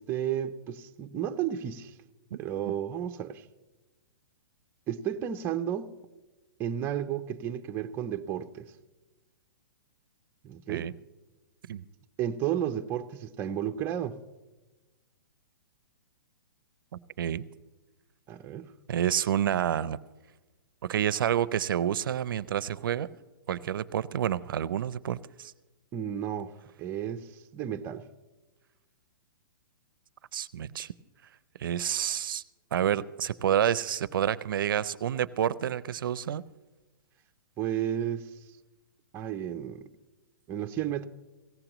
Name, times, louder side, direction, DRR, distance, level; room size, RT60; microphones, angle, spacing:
voice 1, 0.0-1.9 2.3-3.5 4.9-5.9 6.6-8.7 10.4-10.9 12.2-14.2 18.3-18.7 25.9-26.5 26.8-28.0 37.6-38.3 39.1-39.9 40.5-41.1, right 10 dB, 20° right, 0.5 m, -32 dB
voice 2, 18.9-20.0 20.9-23.1 23.5-25.5 30.3-30.9 31.6-32.4 32.7-36.4, right 10 dB, 75° right, 0.5 m, -29 dB
17.5 x 16.0 x 3.0 m
hypercardioid pair, 145°, 11 cm